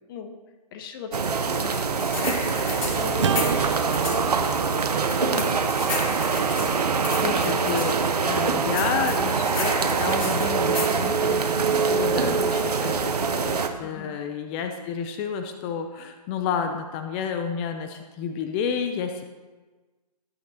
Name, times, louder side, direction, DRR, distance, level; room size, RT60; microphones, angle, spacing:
voice 1, 0.7-3.8 4.2-4.9 5.2-5.7 8.5-8.8 13.8-14.2, left 6 dB, 30° left, 6 dB, 1.1 m, -38 dB
sound 1, 1.1-13.7, right 5 dB, 70° right, 1.1 m, -24 dB
sound 2, 1.7-4.2 5.1-7.9 8.8-11.0, left 3 dB, 55° left, 3.1 m, -33 dB
Acoustic guitar / Strum, 3.2-7.6, right 9 dB, 50° right, 0.5 m, -32 dB
voice 2, 6.7-13.1 13.4-19.2, left 6 dB, 15° left, 6 dB, 0.4 m, -31 dB
18.5 x 9.2 x 2.8 m, 1.3 s
figure-of-eight pair, 140°, 21 cm